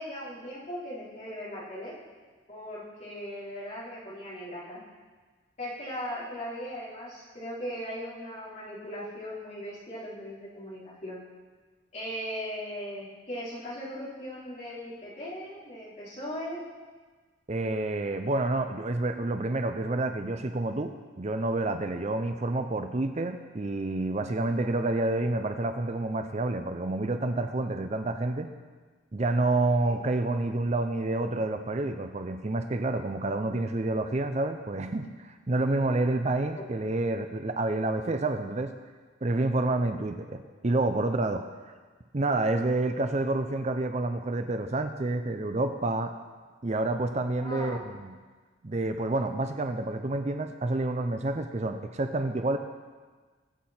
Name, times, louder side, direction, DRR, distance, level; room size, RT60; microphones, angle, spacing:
voice 1, 0.0-1.9 2.5-4.8 5.6-11.2 11.9-16.6 29.8-30.0 47.4-47.9, equal, 40° left, -8 dB, 4.1 m, -38 dB
voice 2, 17.5-28.5 29.1-38.7 39.2-41.5 42.1-46.1 46.6-48.2 48.6-52.6, right 2 dB, 35° right, 7 dB, 0.5 m, -28 dB
21.0 x 7.7 x 4.3 m, 1.4 s
head